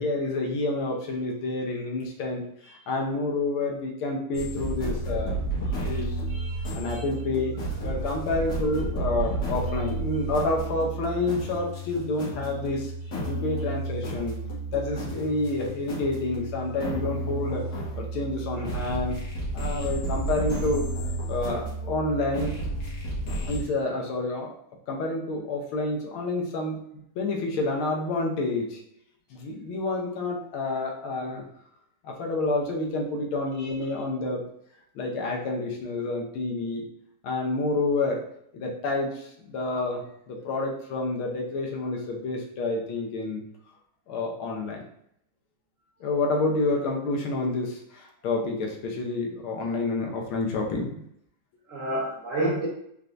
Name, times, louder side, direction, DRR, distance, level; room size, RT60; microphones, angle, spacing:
voice 1, 0.0-6.2 6.7-7.5 7.8-12.9 13.3-14.4 14.7-17.7 18.0-19.2 19.5-20.9 21.3-22.5 23.5-24.5 24.9-26.8 27.1-28.8 29.3-31.5 32.0-34.5 34.9-36.8 37.2-38.2 38.5-43.4 44.1-44.8 46.0-51.0, left 2 dB, 85° left, 1 dB, 1.7 m, -29 dB
sound 1, 4.3-23.6, right 1 dB, 60° left, 1.8 m, -32 dB
voice 2, 6.3-7.0 7.9-8.0 33.6-33.7 51.7-52.7, right 1 dB, 60° right, -5 dB, 0.8 m, -31 dB
4.5 x 3.5 x 2.5 m, 0.72 s
omnidirectional pair, 2.3 m